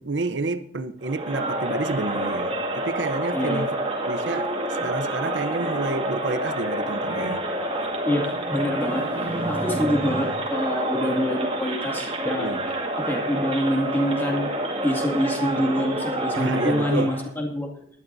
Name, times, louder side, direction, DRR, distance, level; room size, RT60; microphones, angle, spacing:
voice 1, 0.0-3.8 4.0-7.5 12.4-12.6 16.4-17.1, right 3 dB, 80° right, 11 dB, 0.8 m, -29 dB
Crowd, 1.0-17.3, right 1 dB, 30° right, 2.2 m, -28 dB
voice 2, 3.3-3.7 4.8-4.9 7.1-7.3 8.0-12.6 13.0-14.5 14.8-17.7, equal, 10° left, 0 dB, 2.1 m, -26 dB
19.5 x 11.5 x 2.7 m, 0.66 s
head